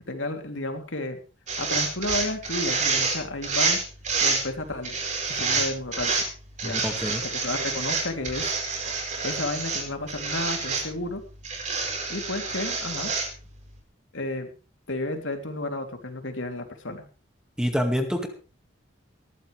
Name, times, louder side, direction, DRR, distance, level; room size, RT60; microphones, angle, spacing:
voice 1, 0.1-1.2 1.6-3.8 4.2-5.0 5.3-6.1 6.6-6.8 7.2-8.5 9.2-11.2 12.1-13.1 14.1-14.5 14.9-17.0, left 2 dB, 80° left, 4 dB, 3.2 m, -32 dB
sound 1, 1.5-4.4 4.8-6.3 6.6-9.8 10.1-10.8 11.4-13.3, right 4 dB, 35° right, 4.7 m, -27 dB
voice 2, 6.6-7.2 17.6-18.3, equal, 5° right, 4 dB, 2.1 m, -26 dB
20.0 x 14.5 x 3.4 m, 0.36 s
head